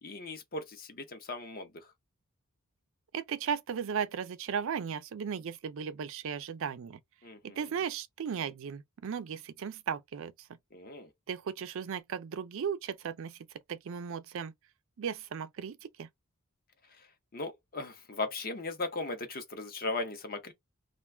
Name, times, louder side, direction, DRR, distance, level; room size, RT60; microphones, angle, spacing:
voice 1, 0.0-1.7 7.2-7.7 10.7-11.1 17.3-20.5, left 3 dB, 45° left, 0.7 m, -37 dB
voice 2, 3.1-7.0 7.6-10.3 11.3-13.4 13.7-14.5 15.0-16.1, right 7 dB, 65° right, 0.4 m, -36 dB
2.4 x 2.3 x 3.3 m
head